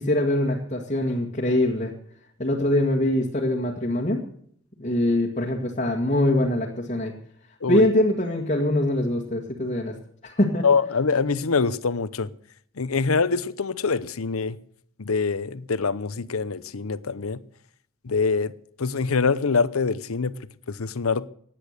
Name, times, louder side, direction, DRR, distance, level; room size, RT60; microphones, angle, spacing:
voice 1, 0.0-1.9 2.4-4.2 4.8-7.1 7.7-9.9 10.2-10.6, left 1 dB, 30° left, 1.9 m, -23 dB
voice 2, 10.6-12.3 12.8-14.6 15.0-17.4 18.0-18.5 18.8-20.3 20.7-21.3, left 4 dB, 80° left, 0.8 m, -24 dB
17.0 x 10.5 x 6.6 m
head